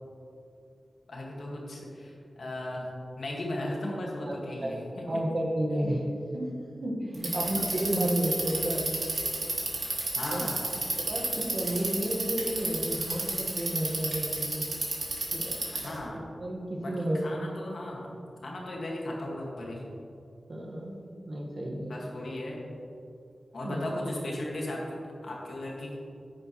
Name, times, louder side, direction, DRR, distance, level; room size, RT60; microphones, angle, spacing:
voice 1, 1.1-2.9 3.2-4.9 10.1-10.7 15.7-16.2 16.8-18.2 18.4-19.8 21.9-22.6 23.5-25.0 25.2-26.0, left 1 dB, 65° left, -2 dB, 1.8 m, -36 dB
voice 2, 5.1-6.0 6.3-6.4 6.8-8.8 10.3-10.5 11.0-14.6 15.3-15.6 16.4-17.2 20.5-21.9 23.6-23.9, right 1 dB, 50° right, -1 dB, 1.5 m, -31 dB
Bicycle, 7.1-15.9, right 3 dB, 65° right, 2.2 m, -31 dB
10.0 x 9.6 x 3.1 m, 2.6 s
wide cardioid pair, 125°, 0 cm